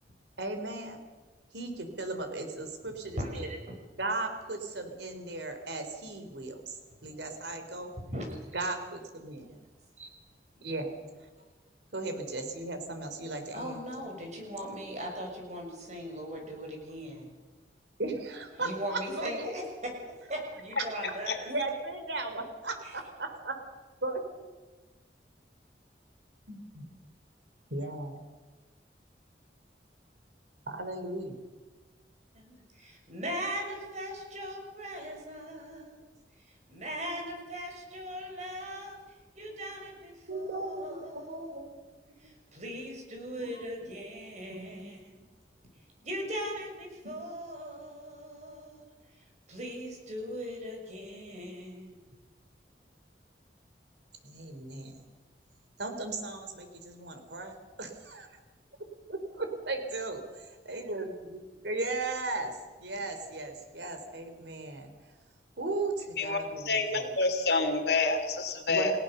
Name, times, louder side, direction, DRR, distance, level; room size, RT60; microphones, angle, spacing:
voice 1, 0.4-1.0 1.5-3.5 4.0-6.8 7.0-7.9 8.5-9.5 10.6-11.0 11.9-13.8 18.0-19.7 21.5-24.2 26.5-26.9 27.7-28.2 30.7-31.4 40.3-41.7 43.4-43.6 44.5-44.9 54.2-55.0 55.8-58.3 59.1-64.9 65.6-67.1 68.7-68.9, right 2 dB, 80° right, 6 dB, 3.7 m, -36 dB
voice 2, 3.1-3.7 7.9-8.4 10.0-10.1 13.5-17.3 18.6-19.9 20.3-21.5 22.8-23.0 32.3-36.0 36.7-41.5 42.2-45.2 46.0-48.8 49.5-52.0, equal, 40° right, 2 dB, 6.6 m, -39 dB
voice 3, 66.6-68.9, left 3 dB, 65° left, 6 dB, 2.9 m, -27 dB
30.0 x 17.5 x 6.8 m, 1.3 s
head